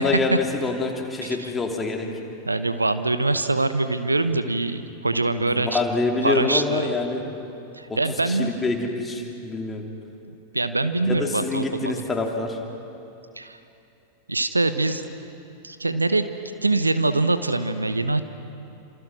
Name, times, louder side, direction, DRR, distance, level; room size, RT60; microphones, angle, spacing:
voice 1, 0.0-2.1 5.3-7.4 7.9-8.0 8.2-9.8 11.1-12.6, left 3 dB, 15° left, 1 dB, 3.3 m, -26 dB
voice 2, 2.5-5.8 6.2-6.9 7.7-8.5 10.3-12.0 13.4-13.6 14.3-15.0 15.6-16.3 16.6-18.2, right 2 dB, 80° right, 11 dB, 1.0 m, -24 dB
29.5 x 27.0 x 6.2 m, 2.7 s
figure-of-eight pair, 90°, 0 cm